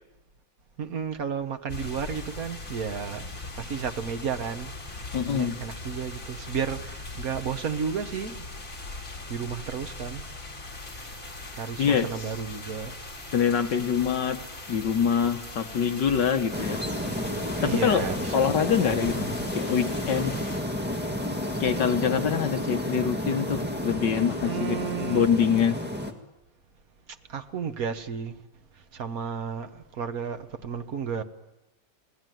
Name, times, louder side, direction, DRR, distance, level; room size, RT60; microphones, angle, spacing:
voice 1, 0.8-8.4 9.3-10.2 11.5-12.9 17.6-18.5 24.4-25.3 27.3-28.4 28.9-31.2, right 6 dB, 50° right, 1.7 m, -33 dB
sound 1, 1.7-20.6, left 2 dB, 45° left, 4.3 m, -40 dB
voice 2, 5.1-5.6 11.8-12.3 13.3-14.4 14.7-16.8 17.6-18.1 18.3-19.3 19.5-20.4 21.6-25.8, left 7 dB, 65° left, 1.8 m, -25 dB
sound 2, 10.6-23.9, right 1 dB, 35° right, 2.7 m, -52 dB
sound 3, 16.5-26.1, left 1 dB, 5° right, 1.8 m, -31 dB
29.5 x 20.0 x 9.3 m
omnidirectional pair, 2.1 m